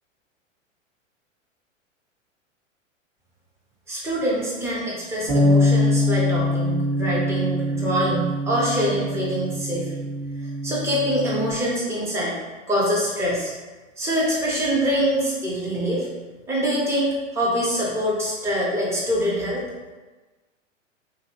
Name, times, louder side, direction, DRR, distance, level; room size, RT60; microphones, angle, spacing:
voice 1, 3.9-9.9 10.6-12.3 12.7-13.5 14.0-16.1 16.5-19.6, equal, 5° right, -6 dB, 0.4 m, -24 dB
Bass guitar, 5.3-11.5, left 1 dB, 60° right, 1.1 m, -23 dB
2.7 x 2.5 x 2.8 m, 1.2 s
figure-of-eight pair, 100°, 39 cm